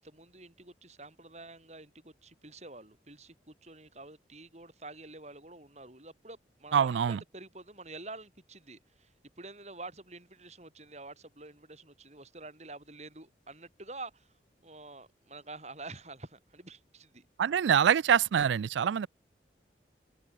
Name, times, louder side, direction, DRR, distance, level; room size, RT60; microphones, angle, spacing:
voice 1, 0.0-14.3 14.6-17.3, right 2 dB, 40° right, 6.1 m, -48 dB
voice 2, 6.7-7.2 17.4-19.1, right 8 dB, 85° right, 0.4 m, -25 dB
head